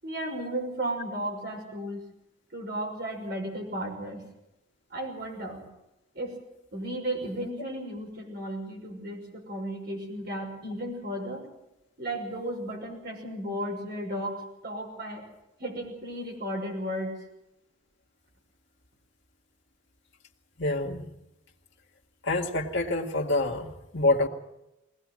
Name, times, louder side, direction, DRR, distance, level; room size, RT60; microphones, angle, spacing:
voice 1, 0.0-2.0 2.5-4.2 4.9-5.6 6.1-6.4 6.7-11.4 12.0-15.3 15.6-17.2, right 1 dB, 50° right, 1 dB, 6.0 m, -34 dB
voice 2, 20.6-21.1 22.2-24.3, left 2 dB, 60° left, 0 dB, 2.0 m, -26 dB
21.0 x 19.0 x 7.6 m, 0.91 s
head